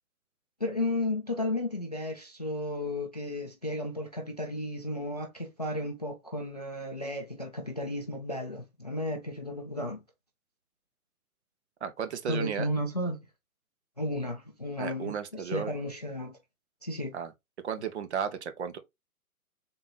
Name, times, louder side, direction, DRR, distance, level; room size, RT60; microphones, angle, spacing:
voice 1, 0.6-10.0 12.3-13.2 14.0-16.4 16.8-17.1, left 1 dB, 30° left, 0.3 m, -33 dB
voice 2, 11.8-12.7 14.8-15.7 17.1-17.3 17.6-18.8, right 7 dB, 50° right, 0.8 m, -34 dB
3.8 x 2.8 x 3.9 m
hypercardioid pair, 145°, 45 cm